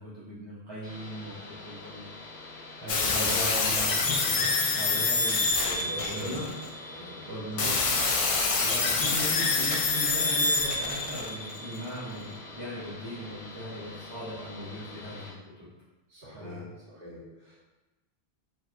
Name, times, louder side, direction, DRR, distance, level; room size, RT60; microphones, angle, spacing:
voice 1, 0.0-2.1 2.8-5.5 6.1-6.5 7.3-7.9 8.6-15.7 16.3-16.7, right 1 dB, 30° right, -10 dB, 0.7 m, -38 dB
sound 1, 0.8-15.3, left 2 dB, 75° left, 1.4 m, -45 dB
sound 2, 2.9-6.7 7.6-11.8, left 4 dB, 60° left, 0.3 m, -26 dB
voice 2, 5.6-6.4 6.9-7.7 16.1-17.6, left 1 dB, 50° right, -9 dB, 1.4 m, -42 dB
3.9 x 2.9 x 2.5 m, 1.1 s
omnidirectional pair, 1.1 m